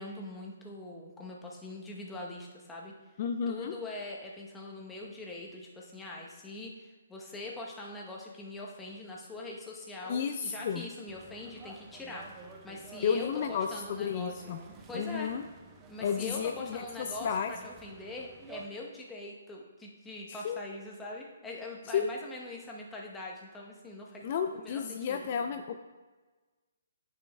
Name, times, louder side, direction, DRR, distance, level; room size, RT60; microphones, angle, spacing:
voice 1, 0.0-2.9 3.5-14.6 14.9-15.3 15.9-25.5, left 2 dB, 10° left, -2 dB, 1.0 m, -43 dB
voice 2, 3.2-3.7 10.1-10.9 13.0-14.6 14.9-15.4 16.0-16.8 17.2-17.5 20.3-20.6 21.9-22.1 24.2-25.8, left 7 dB, 45° left, 7 dB, 0.4 m, -32 dB
sound 1, 11.1-18.7, right 4 dB, 20° right, 0.6 m, -51 dB
10.0 x 5.1 x 2.3 m, 1.3 s
figure-of-eight pair, 135°, 0 cm